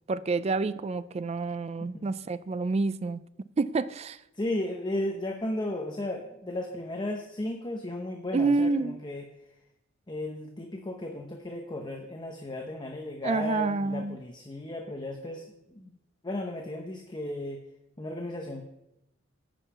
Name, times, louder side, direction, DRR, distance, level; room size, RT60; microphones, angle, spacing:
voice 1, 0.1-3.2 3.6-4.2 8.3-9.0 13.2-14.2, right 3 dB, 30° right, 0.4 m, -28 dB
voice 2, 4.3-9.3 10.1-16.0 16.2-17.6 18.0-18.6, left 1 dB, 25° left, 0.8 m, -35 dB
10.0 x 5.5 x 7.0 m
head